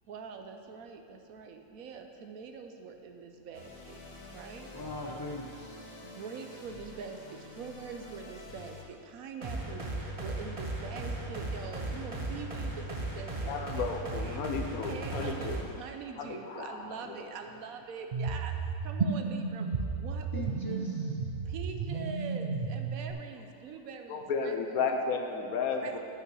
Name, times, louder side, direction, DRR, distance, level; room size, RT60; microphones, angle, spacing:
voice 1, 0.1-4.0 4.3-4.7 5.1-5.2 6.0-13.9 14.2-14.4 14.9-20.4 20.7-20.9 21.4-24.8 25.7-26.0, right 5 dB, 75° right, 5 dB, 1.1 m, -44 dB
sound 1, 3.5-8.8, left 2 dB, 45° left, 1.2 m, -48 dB
voice 2, 4.7-6.1 11.8-13.0 20.3-21.2, left 1 dB, 20° left, -1 dB, 0.6 m, -42 dB
sound 2, 9.4-15.6, right 2 dB, 30° right, 0.8 m, -36 dB
voice 3, 13.5-15.6 16.2-17.2 24.1-26.0, left 5 dB, 75° left, 3 dB, 1.3 m, -33 dB
sound 3, 18.1-23.1, right 4 dB, 60° right, 0.5 m, -33 dB
9.1 x 5.8 x 6.2 m, 2.6 s
omnidirectional pair, 1.5 m